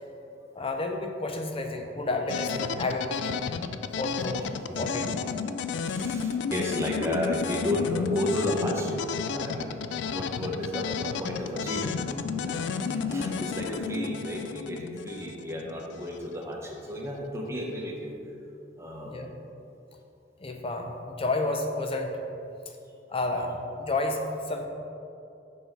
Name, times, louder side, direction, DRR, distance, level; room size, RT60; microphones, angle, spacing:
voice 1, 0.5-3.4 4.0-4.4 4.7-5.2 19.1-19.3 20.4-22.2 23.1-24.7, left 2 dB, 30° left, 3 dB, 0.6 m, -30 dB
sound 1, 2.3-16.2, left 6 dB, 70° left, 0.3 m, -32 dB
voice 2, 4.4-4.9 5.8-18.2 18.8-19.2, left 1 dB, 15° right, -2 dB, 1.0 m, -33 dB
6.2 x 5.4 x 4.6 m, 2.7 s
head